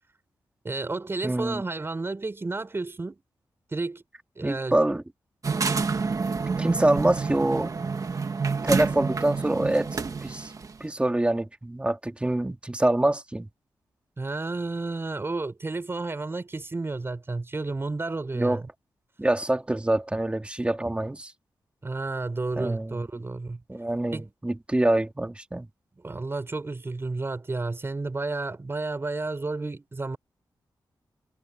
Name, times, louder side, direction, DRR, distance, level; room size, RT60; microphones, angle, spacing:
voice 1, 0.6-3.2 3.7-4.0 4.4-4.8 14.2-18.7 21.8-23.6 24.1-24.3 26.0-30.2, right 3 dB, 30° right, 5.7 m, -31 dB
voice 2, 1.2-1.6 4.4-5.0 6.6-7.7 8.6-10.5 10.8-13.5 18.3-18.6 19.2-21.3 22.6-23.1 23.7-25.7, right 1 dB, 15° right, 1.9 m, -25 dB
sound 1, 5.4-10.7, right 4 dB, 45° right, 1.5 m, -28 dB
wide cardioid pair, 95°, 8 cm